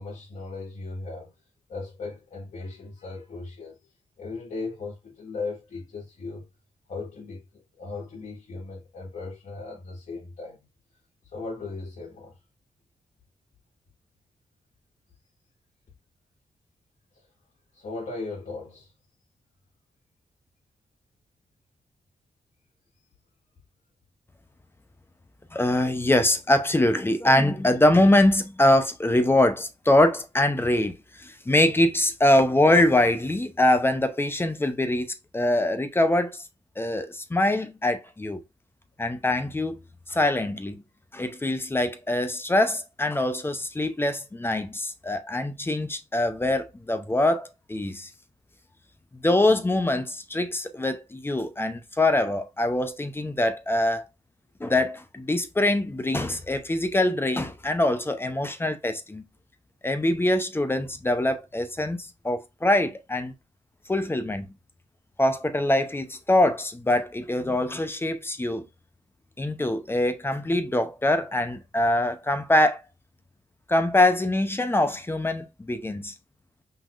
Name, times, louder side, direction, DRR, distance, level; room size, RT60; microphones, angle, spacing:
voice 1, 0.0-1.3 1.7-3.8 4.2-6.5 6.9-10.6 11.3-12.3 17.7-18.9, left 3 dB, 70° left, 1.9 m, -37 dB
voice 2, 25.5-35.1 35.3-36.4 36.8-38.4 39.0-39.8 40.1-40.8 41.1-48.1 49.1-54.1 54.6-59.2 59.8-63.3 63.9-64.5 65.2-68.6 69.4-72.8 73.7-76.1, left 1 dB, 15° left, 0.8 m, -23 dB
5.6 x 3.7 x 2.5 m
cardioid pair, 100°, 13 cm